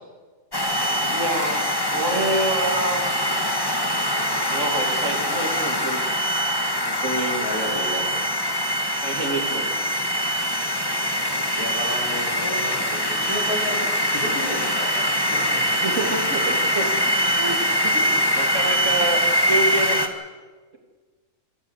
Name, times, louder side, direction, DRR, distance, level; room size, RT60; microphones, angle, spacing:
sound 1, 0.5-20.1, equal, 15° left, 1.9 m, -23 dB
voice 1, 1.0-3.0 4.4-6.2 6.8-7.5 9.0-9.7 15.8-16.9 17.4-17.6 17.9-19.2 19.5-20.0, right 2 dB, 55° right, 4 dB, 3.1 m, -27 dB
voice 2, 7.4-8.3 11.6-15.0 15.3-15.7, left 1 dB, 80° left, -4 dB, 5.6 m, -32 dB
27.0 x 14.5 x 8.2 m, 1.4 s
omnidirectional pair, 1.6 m